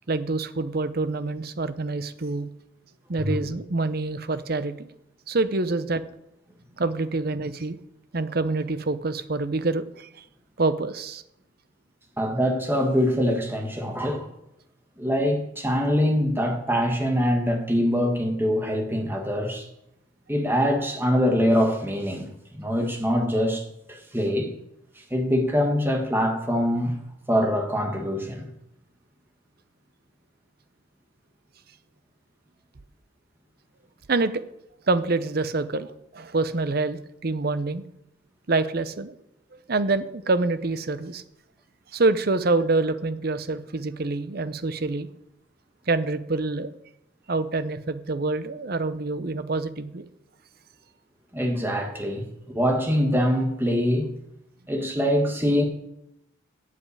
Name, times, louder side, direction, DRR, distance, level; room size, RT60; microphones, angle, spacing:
voice 1, 0.1-2.5 3.1-4.9 5.3-6.0 6.8-7.8 8.1-10.2 10.6-11.2 34.1-34.3 34.9-37.8 38.5-39.2 39.7-41.2 41.9-45.1 45.9-46.7 47.3-50.1, right 3 dB, 50° right, 0.7 m, -26 dB
voice 2, 3.2-3.5 12.2-14.3 15.0-19.7 20.3-22.3 22.5-23.6 23.9-24.5 25.1-27.0 27.3-28.5 51.3-54.1 54.7-55.6, equal, 10° right, 1.5 m, -24 dB
8.4 x 7.7 x 8.5 m
head